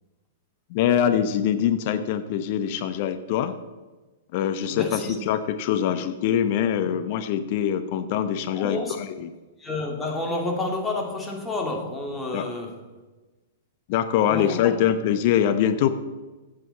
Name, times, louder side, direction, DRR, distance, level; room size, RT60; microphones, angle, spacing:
voice 1, 0.7-3.6 4.3-8.8 9.2-9.3 12.3-12.5 13.9-15.9, left 9 dB, 45° left, 10 dB, 0.8 m, -23 dB
voice 2, 4.6-5.2 8.5-9.0 9.6-12.8 14.2-14.9, left 2 dB, 10° left, 0 dB, 2.3 m, -30 dB
15.0 x 8.0 x 4.2 m, 1.2 s
figure-of-eight pair, 105°, 0 cm